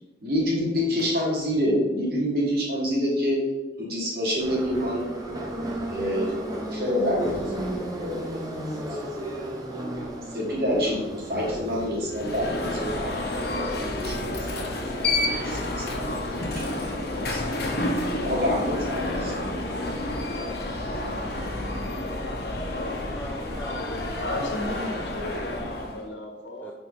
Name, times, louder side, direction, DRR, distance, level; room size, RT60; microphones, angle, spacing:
voice 1, 0.2-3.4 3.8-5.0 5.9-6.3 6.7-9.0 10.3-17.7 18.2-19.6, equal, 55° right, -4 dB, 2.1 m, -28 dB
Subway metro underground, 4.4-16.9, right 1 dB, 20° right, 0.9 m, -35 dB
Alarm, 12.1-26.0, left 2 dB, 60° left, 1.0 m, -30 dB
voice 2, 21.9-24.3 26.6-26.7, equal, 10° left, 0 dB, 0.4 m, -42 dB
voice 3, 24.1-26.7, left 1 dB, 80° left, 2 dB, 1.2 m, -34 dB
4.6 x 4.2 x 5.3 m, 1.1 s
head